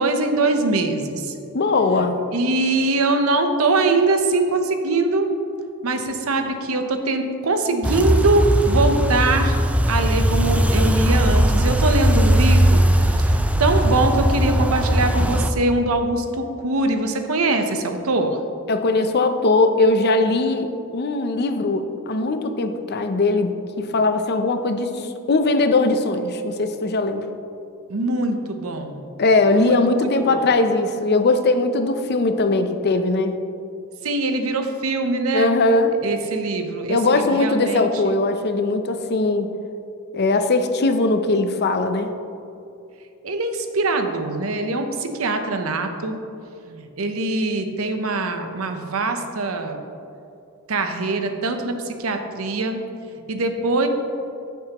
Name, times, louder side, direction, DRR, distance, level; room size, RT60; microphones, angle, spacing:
voice 1, 0.0-1.3 2.0-2.1 2.3-5.3 5.8-9.6 9.9-18.4 27.9-29.0 29.6-30.4 34.0-35.5 36.0-38.2 43.2-46.2 46.7-49.8 50.7-53.9, right 2 dB, 70° right, 6 dB, 0.8 m, -23 dB
voice 2, 1.5-2.2 18.7-27.2 29.2-33.4 35.3-35.9 36.9-39.5 40.1-42.1, left 2 dB, 50° left, 8 dB, 0.6 m, -20 dB
sound 1, 7.8-15.5, equal, 5° right, 0.4 m, -18 dB
14.5 x 7.1 x 3.0 m, 2.6 s
head